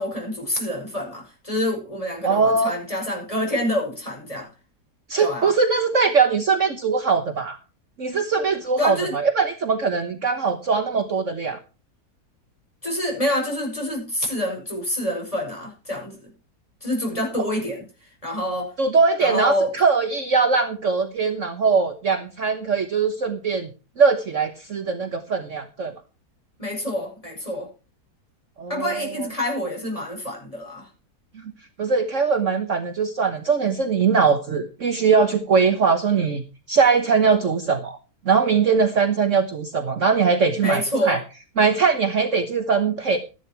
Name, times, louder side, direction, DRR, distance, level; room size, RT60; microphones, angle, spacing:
voice 1, 0.0-4.5 5.2-5.5 8.8-9.1 12.8-16.3 16.8-17.8 18.2-18.7 19.2-19.7 26.6-27.7 28.7-30.9 40.6-41.2, left 1 dB, 20° left, 0 dB, 5.9 m, -27 dB
voice 2, 2.2-2.7 5.1-7.6 8.0-11.6 18.8-23.7 24.0-25.9 28.6-29.3 31.8-36.4 36.7-38.0 38.2-41.2 41.6-43.2, right 5 dB, 50° right, 7 dB, 1.5 m, -21 dB
13.5 x 11.0 x 4.6 m, 0.32 s
omnidirectional pair, 1.8 m